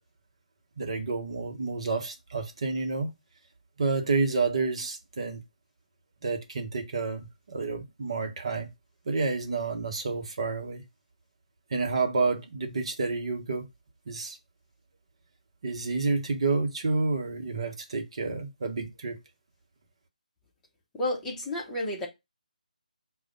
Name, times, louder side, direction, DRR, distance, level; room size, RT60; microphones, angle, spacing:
voice 1, 0.8-3.1 3.8-5.4 6.2-8.7 9.0-10.8 11.7-13.7 14.1-14.4 15.6-19.2, right 3 dB, 45° right, 1.0 m, -29 dB
voice 2, 21.0-22.1, left 1 dB, 10° left, 1.0 m, -31 dB
4.9 x 2.4 x 3.9 m
figure-of-eight pair, 150°, 4 cm